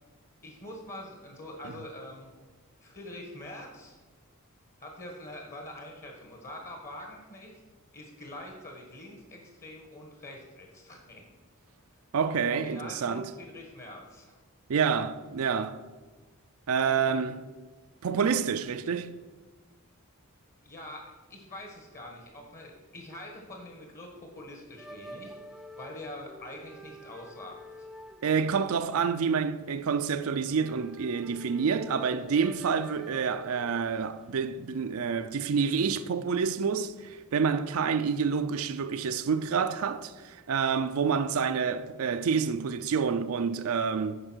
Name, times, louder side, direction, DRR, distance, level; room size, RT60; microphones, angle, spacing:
voice 1, 0.4-2.3 2.8-4.0 4.8-7.6 7.9-11.3 12.5-14.4 16.8-17.3 20.6-27.9, left 1 dB, 40° left, 1.3 m, -44 dB
voice 2, 12.1-13.3 14.7-15.8 16.7-17.4 18.0-19.2 28.2-44.2, right 6 dB, 70° right, 0.4 m, -28 dB
sound 1, 24.8-34.3, equal, ahead, 0.4 m, -49 dB
10.0 x 4.8 x 6.1 m
head